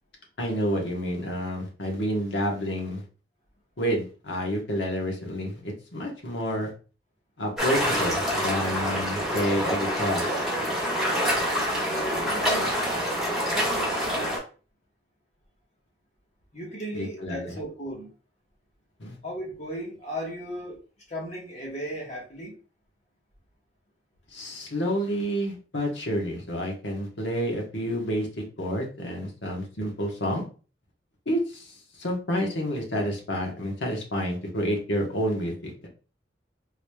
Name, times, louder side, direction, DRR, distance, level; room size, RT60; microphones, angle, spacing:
voice 1, 0.4-3.0 3.8-6.7 7.4-10.2 16.9-17.5 19.0-19.2 24.3-30.4 31.3-35.9, equal, 80° left, 1.2 m, -29 dB
sound 1, 7.6-14.4, equal, ahead, 1.3 m, -26 dB
voice 2, 11.8-12.7 13.5-14.4 16.5-18.1 19.2-22.6, equal, 40° left, 1.2 m, -36 dB
3.8 x 3.2 x 2.2 m
head